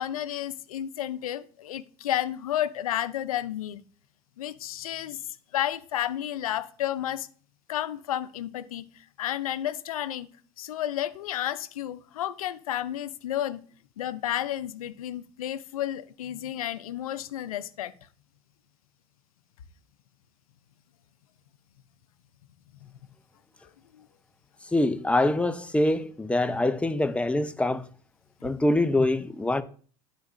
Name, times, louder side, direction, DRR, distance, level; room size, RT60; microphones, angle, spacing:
voice 1, 0.0-3.8 4.4-7.3 7.7-10.3 10.6-13.6 14.0-17.9 22.8-22.9 23.9-24.1, left 12 dB, 85° left, 0.5 m, -32 dB
voice 2, 24.7-27.9 28.4-29.6, left 1 dB, 5° left, 0.6 m, -24 dB
11.5 x 4.0 x 2.6 m
hypercardioid pair, 85°, 18 cm